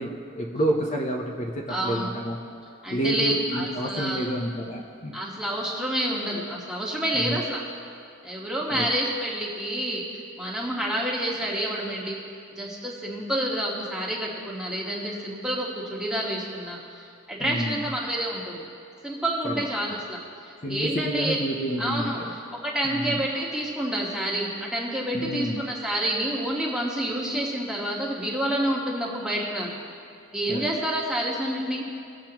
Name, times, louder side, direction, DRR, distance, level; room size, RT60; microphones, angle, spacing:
voice 1, 0.0-2.4 2.9-5.1 7.1-7.4 8.7-8.9 17.4-17.9 19.4-19.6 20.6-22.4 22.8-23.2 25.1-25.6 30.5-30.7, right 1 dB, 30° left, -2 dB, 0.7 m, -29 dB
voice 2, 1.7-2.1 2.8-4.3 5.1-7.6 8.2-12.2 12.6-18.6 19.0-21.4 21.8-29.7 30.3-31.8, right 1 dB, 5° right, -4 dB, 1.4 m, -28 dB
19.5 x 7.4 x 3.0 m, 2.7 s
head